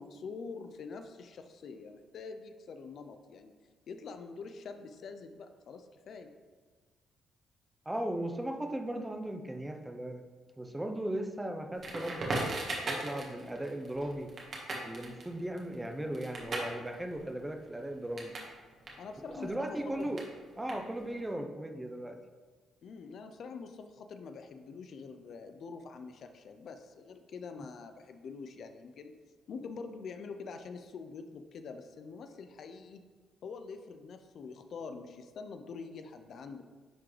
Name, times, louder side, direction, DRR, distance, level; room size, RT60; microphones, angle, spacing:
voice 1, 0.0-3.5 3.9-6.3 19.0-20.2 22.8-29.1 29.5-33.0 33.4-36.6, left 4 dB, 60° left, 8 dB, 0.5 m, -45 dB
voice 2, 7.9-10.2 10.6-12.5 12.9-14.3 14.8-18.4 19.2-20.2 20.6-22.2, right 1 dB, 10° right, 6 dB, 0.6 m, -37 dB
Crackle, 11.8-18.5 18.8-21.2, right 2 dB, 50° right, 1.5 m, -39 dB
10.5 x 3.8 x 3.2 m, 1.4 s
cardioid pair, 90°, 0 cm